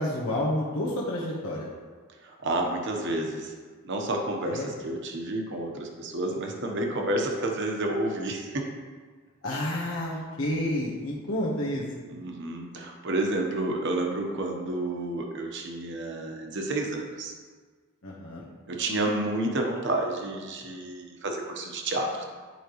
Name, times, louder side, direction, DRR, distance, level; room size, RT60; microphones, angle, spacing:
voice 1, 0.0-1.7 4.4-4.7 9.4-11.8 18.0-18.4, left 1 dB, 75° left, -5 dB, 1.2 m, -30 dB
voice 2, 2.2-3.5 3.8-8.7 9.5-9.6 12.1-17.3 18.7-22.2, right 2 dB, 60° right, 2 dB, 1.0 m, -30 dB
11.0 x 5.1 x 3.1 m, 1.5 s
head